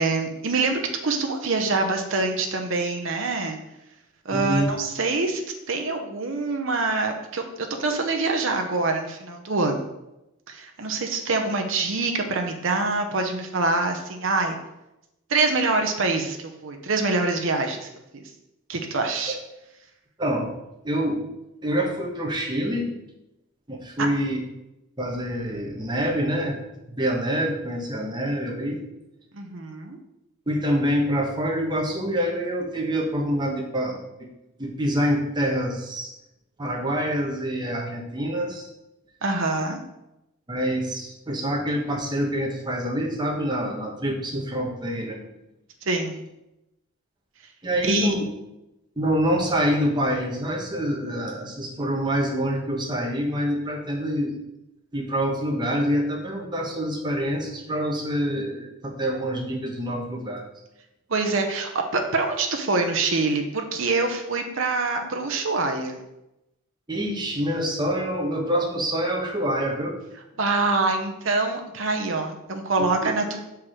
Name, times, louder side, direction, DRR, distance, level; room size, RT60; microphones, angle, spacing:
voice 1, 0.0-3.6 4.2-9.9 10.5-14.6 15.3-18.2 18.7-19.4 29.3-30.0 39.2-39.8 45.8-46.2 47.8-48.2 61.1-66.0 70.4-73.4, right 3 dB, 65° right, 4 dB, 0.8 m, -25 dB
voice 2, 4.3-4.7 18.9-19.0 20.2-20.5 20.8-21.2 21.6-22.9 23.7-24.4 25.0-26.6 26.9-28.8 30.5-34.0 34.6-36.1 36.6-38.7 40.5-45.2 47.6-48.2 49.0-54.4 54.9-60.5 66.9-70.0 72.8-73.1, equal, 20° right, 0 dB, 1.0 m, -26 dB
6.0 x 4.7 x 4.9 m, 0.91 s
head